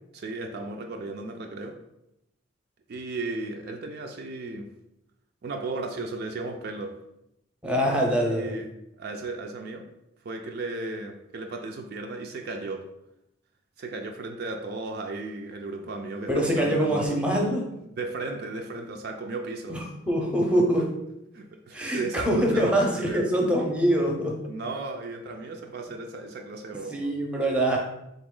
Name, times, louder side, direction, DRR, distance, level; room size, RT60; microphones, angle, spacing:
voice 1, 0.1-1.8 2.9-4.7 5.4-7.0 8.3-8.7 9.0-9.9 10.2-12.9 13.8-17.2 17.9-19.8 21.3-23.3 24.5-27.1, right 3 dB, 55° right, 3 dB, 0.4 m, -35 dB
voice 2, 7.6-8.5 16.3-17.6 19.7-20.9 21.7-24.4 26.9-27.8, equal, 5° right, 0 dB, 0.6 m, -24 dB
3.9 x 2.9 x 3.7 m, 0.84 s
head